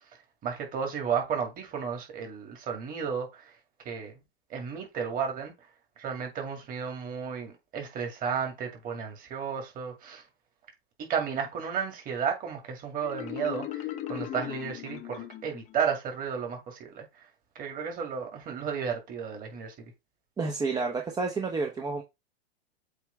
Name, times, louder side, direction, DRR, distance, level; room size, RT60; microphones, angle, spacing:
voice 1, 0.4-3.4 3.9-4.1 4.5-5.5 6.0-10.2 11.1-17.1 17.6-19.7, right 7 dB, 30° right, 2.3 m, -33 dB
Marimba xylophone, 13.0-15.8, left 13 dB, 25° left, 0.6 m, -37 dB
voice 2, 20.4-22.0, right 4 dB, 15° right, 0.8 m, -30 dB
8.1 x 3.3 x 3.5 m
hypercardioid pair, 130°, 30 cm